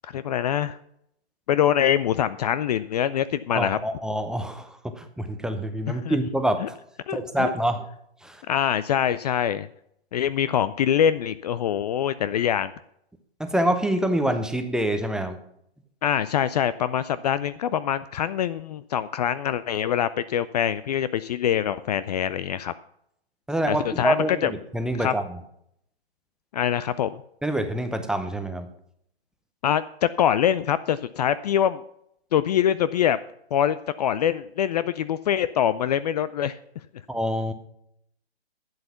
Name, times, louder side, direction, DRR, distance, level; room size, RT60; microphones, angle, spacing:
voice 1, 0.0-0.8 1.5-3.8 5.9-6.2 6.6-6.7 7.1-7.5 8.5-9.7 10.1-12.7 16.0-22.7 23.7-24.5 25.0-25.1 26.5-27.2 29.6-31.8 32.3-33.2 33.5-36.6, left 9 dB, 40° left, 16 dB, 0.5 m, -24 dB
voice 2, 3.5-6.8 7.1-7.8 8.2-8.4 13.4-15.4 23.5-25.4 27.4-28.7 37.1-37.5, right 1 dB, ahead, 7 dB, 0.7 m, -26 dB
12.0 x 8.2 x 5.7 m, 0.72 s
hypercardioid pair, 130°, 32 cm